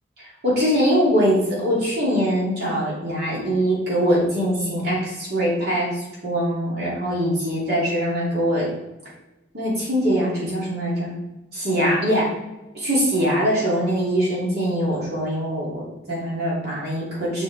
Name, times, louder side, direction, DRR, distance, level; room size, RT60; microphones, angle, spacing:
voice 1, 0.4-8.7 9.5-11.1 11.5-12.3 12.7-17.4, equal, 60° right, -6 dB, 2.8 m, -22 dB
7.1 x 5.4 x 4.7 m, 1.0 s
head